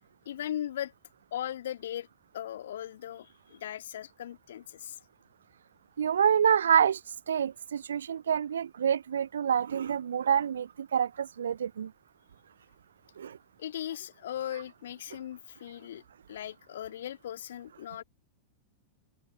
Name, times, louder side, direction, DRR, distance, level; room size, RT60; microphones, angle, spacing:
voice 1, 0.2-0.9 1.3-2.1 2.3-5.0 13.6-16.0 16.3-18.0, left 11 dB, 60° left, 1.9 m, -38 dB
voice 2, 6.0-7.0 7.3-11.9 13.2-13.4, right 8 dB, 65° right, 0.5 m, -27 dB
figure-of-eight pair, 90°, 0 cm